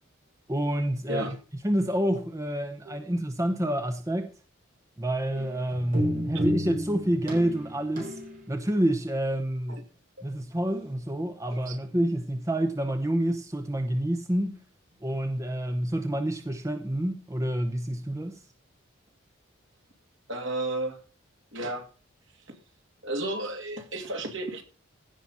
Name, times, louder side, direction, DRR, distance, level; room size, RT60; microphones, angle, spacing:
voice 1, 0.5-1.3 1.6-4.3 5.0-8.2 8.5-9.8 10.2-14.6 15.0-18.4, right 1 dB, 15° right, 0.8 m, -28 dB
sound 1, 5.3-8.4, equal, 40° right, 4.1 m, -31 dB
voice 2, 20.3-21.0 21.5-21.8 23.0-24.6, right 1 dB, 70° right, 2.5 m, -32 dB
15.5 x 5.9 x 5.5 m
head